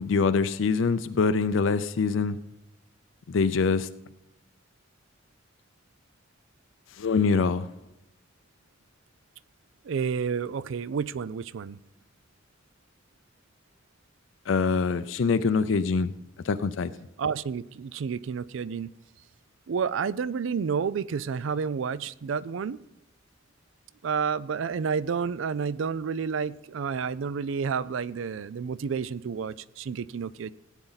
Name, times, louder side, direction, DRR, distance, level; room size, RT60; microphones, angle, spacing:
voice 1, 0.0-2.4 3.3-3.9 7.0-7.7 14.5-16.1 16.4-16.9, left 4 dB, 70° left, 0.5 m, -24 dB
voice 2, 9.8-11.8 17.2-18.9 19.7-22.8 24.0-30.5, right 6 dB, 70° right, 0.4 m, -30 dB
17.0 x 9.0 x 4.0 m
head